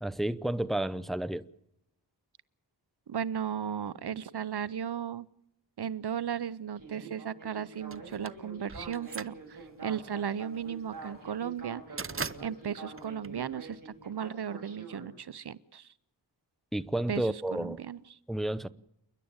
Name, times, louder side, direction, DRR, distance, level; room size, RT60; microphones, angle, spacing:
voice 1, 0.0-1.5 16.7-17.8 18.3-18.7, right 1 dB, ahead, 0.8 m, -31 dB
voice 2, 3.1-5.3 5.8-12.0 12.4-15.9 17.1-18.2, right 8 dB, 65° right, 0.7 m, -36 dB
Speech synthesizer, 6.8-15.1, right 3 dB, 45° right, 6.4 m, -46 dB
sound 1, 7.9-14.0, right 5 dB, 30° right, 0.7 m, -41 dB
29.0 x 11.0 x 8.8 m
wide cardioid pair, 75°, 43 cm